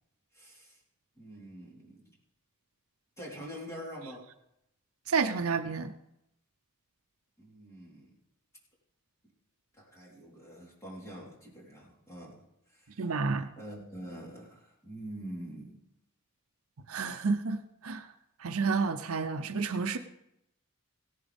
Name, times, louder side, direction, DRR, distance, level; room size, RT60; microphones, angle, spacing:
voice 1, 0.3-0.8 1.2-2.1 3.2-4.2 7.4-8.1 9.8-13.1 13.6-15.8, equal, 15° left, -5 dB, 3.8 m, -45 dB
voice 2, 5.1-5.9 13.0-13.5 16.9-18.0 18.4-20.0, right 4 dB, 70° right, 8 dB, 0.6 m, -30 dB
17.0 x 11.0 x 3.5 m, 0.83 s
head